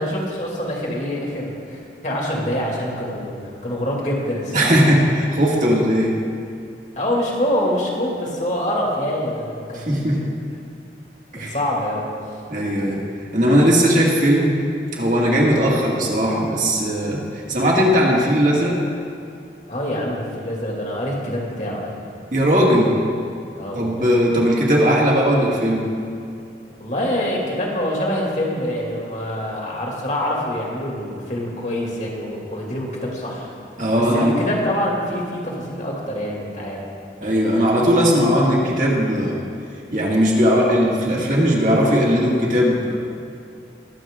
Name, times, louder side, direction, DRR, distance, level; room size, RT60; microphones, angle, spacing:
voice 1, 0.0-4.7 7.0-9.9 11.3-12.0 19.7-22.1 23.5-24.1 26.8-33.5 34.1-36.8, left 1 dB, 45° left, -3 dB, 2.4 m, -25 dB
voice 2, 4.5-6.1 9.7-10.2 11.3-11.6 12.5-13.0 13.3-14.6 14.9-18.8 22.3-23.0 23.7-25.9 33.8-34.4 37.2-39.4 39.9-43.0, equal, 45° right, -3 dB, 2.0 m, -18 dB
22.0 x 7.7 x 3.7 m, 2.5 s
head